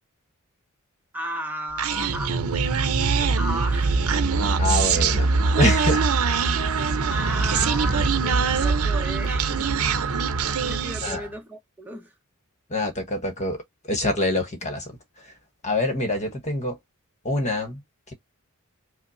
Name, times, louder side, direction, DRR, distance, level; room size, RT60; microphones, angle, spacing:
voice 1, 1.1-2.4 3.4-4.0 7.1-9.7 10.6-12.1, right 1 dB, 10° right, 0.9 m, -34 dB
Human voice, 1.8-11.3, right 4 dB, 75° right, 0.6 m, -23 dB
voice 2, 4.6-6.0 11.0-11.3 12.7-15.3 15.6-16.8 17.2-17.8 18.1-18.2, left 1 dB, 35° left, 1.1 m, -26 dB
5.2 x 2.1 x 2.6 m
head